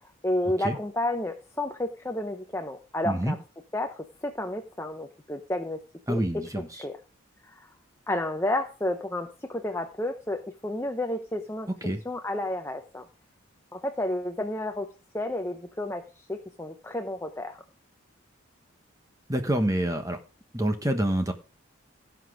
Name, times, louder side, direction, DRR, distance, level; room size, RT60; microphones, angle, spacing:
voice 1, 0.2-3.4 3.7-5.8 6.1-6.2 6.8-6.9 7.4-7.7 8.1-11.7 12.0-13.1 13.7-14.9 15.1-17.6, left 1 dB, 10° left, 5 dB, 0.8 m, -31 dB
voice 2, 6.1-6.8 11.8-12.0 19.3-20.2 20.5-21.3, right 1 dB, 15° right, 6 dB, 1.2 m, -27 dB
16.5 x 6.1 x 4.9 m, 0.32 s
head